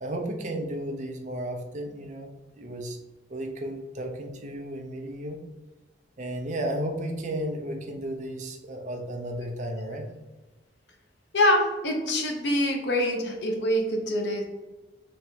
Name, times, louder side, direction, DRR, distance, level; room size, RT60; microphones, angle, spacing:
voice 1, 0.0-3.0 3.3-5.4 6.2-10.0, right 1 dB, 45° right, 2 dB, 0.7 m, -33 dB
voice 2, 11.3-14.4, left 1 dB, 75° left, 2 dB, 0.9 m, -25 dB
3.4 x 3.2 x 4.4 m, 1.2 s
head